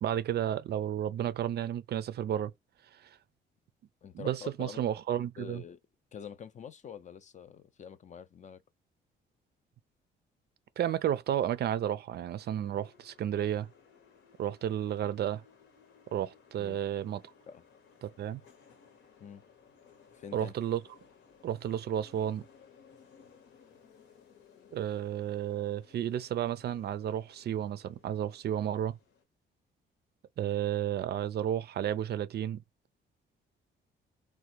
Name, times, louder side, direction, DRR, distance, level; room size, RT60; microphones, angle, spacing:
voice 1, 0.0-2.5 3.0-3.1 4.1-5.6 10.8-13.7 14.4-15.4 16.1-17.2 18.0-18.4 20.3-20.8 21.4-22.5 24.7-29.0 30.4-32.6, right 10 dB, 55° right, 0.4 m, -32 dB
voice 2, 4.0-4.8 5.4-5.8 6.1-8.6 16.6-16.8 17.5-17.6 19.2-19.4 20.1-20.5, left 7 dB, 40° left, 0.4 m, -46 dB
sound 1, 12.6-29.2, left 6 dB, 80° left, 0.9 m, -60 dB
3.5 x 2.1 x 2.8 m
cardioid pair, 90°, 20 cm